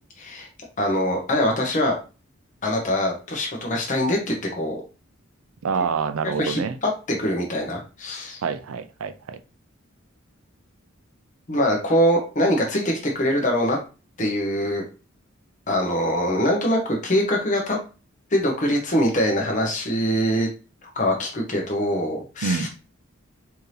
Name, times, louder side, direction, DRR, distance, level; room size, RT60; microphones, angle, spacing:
voice 1, 0.2-0.5 0.8-1.9 2.6-4.8 6.4-8.4 11.5-13.8 14.2-14.8 15.7-17.8 18.3-20.5 21.0-22.7, equal, 40° left, 0 dB, 0.9 m, -23 dB
voice 2, 5.6-6.8 8.4-9.4 22.4-22.7, right 5 dB, 90° right, 11 dB, 0.4 m, -26 dB
4.5 x 2.7 x 3.2 m, 0.33 s
head